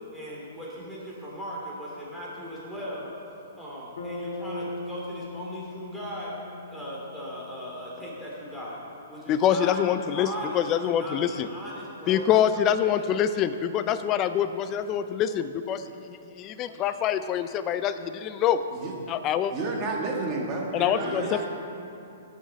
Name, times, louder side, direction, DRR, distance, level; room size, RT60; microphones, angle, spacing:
voice 1, 0.1-3.1 3.6-6.4 6.7-8.8 9.1-9.8 10.1-13.2 20.7-21.5, equal, ahead, -7 dB, 2.7 m, -38 dB
Bass guitar, 4.0-8.0, left 1 dB, 60° left, 2.1 m, -39 dB
voice 2, 9.3-11.5 12.1-18.6 19.1-19.5 20.7-21.5, left 9 dB, 25° left, 11 dB, 0.4 m, -25 dB
voice 3, 19.5-20.7 20.9-21.5, right 3 dB, 30° right, -1 dB, 1.6 m, -31 dB
15.5 x 6.2 x 4.1 m, 2.7 s
hypercardioid pair, 145°, 0 cm